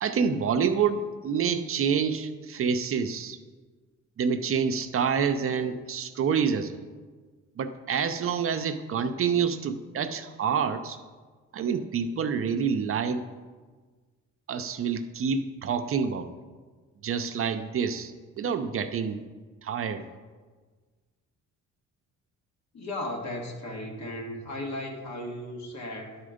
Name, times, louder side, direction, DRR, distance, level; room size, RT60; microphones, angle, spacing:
voice 1, 0.0-3.4 4.2-6.8 7.6-11.0 11.5-13.2 14.5-16.3 17.0-19.2 19.6-20.0, right 6 dB, 45° right, 8 dB, 0.5 m, -27 dB
voice 2, 22.7-26.2, left 1 dB, 65° left, 2 dB, 1.5 m, -36 dB
10.5 x 4.3 x 5.0 m, 1.4 s
cardioid pair, 90°, 30 cm